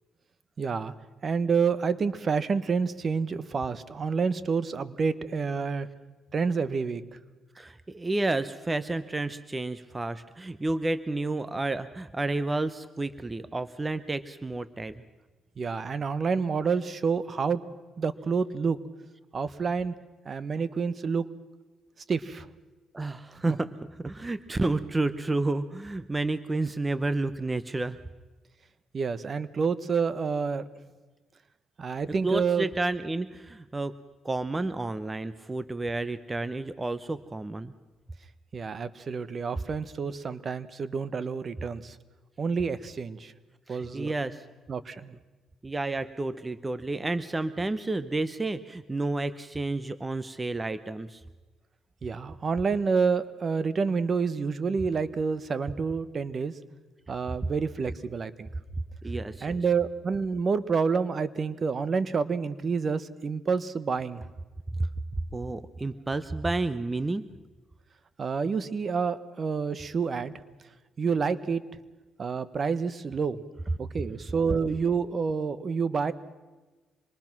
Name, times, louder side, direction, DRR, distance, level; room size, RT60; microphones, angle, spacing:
voice 1, 0.6-0.9 1.2-5.9 6.3-7.0 15.6-17.6 18.0-18.8 19.3-19.9 20.2-21.2 22.1-22.5 23.5-23.6 28.9-30.6 31.8-32.7 38.5-42.0 42.4-43.3 43.7-44.1 44.7-45.1 52.0-56.5 57.1-58.5 59.4-64.2 68.2-70.3 71.0-71.6 72.2-73.4 73.8-76.1, right 5 dB, 45° right, 14 dB, 1.1 m, -28 dB
voice 2, 7.5-15.0 22.9-28.0 32.1-33.9 34.2-37.7 43.7-44.4 45.6-51.2 59.0-59.5 64.7-64.9 65.3-67.3, right 2 dB, 20° right, 13 dB, 0.8 m, -31 dB
26.0 x 22.0 x 6.1 m, 1.2 s
cardioid pair, 90°, 0 cm